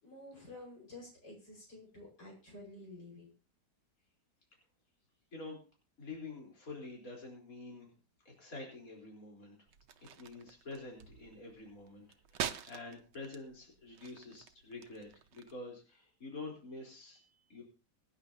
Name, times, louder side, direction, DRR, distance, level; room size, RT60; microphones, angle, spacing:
voice 1, 0.0-3.3, left 2 dB, 90° left, -1 dB, 6.1 m, -51 dB
voice 2, 6.0-7.9 8.2-9.6 10.0-17.6, left 3 dB, 55° left, -2 dB, 4.6 m, -47 dB
sound 1, 9.7-15.6, right 9 dB, 85° right, 1.5 m, -46 dB
24.0 x 10.0 x 2.9 m, 0.33 s
omnidirectional pair, 1.8 m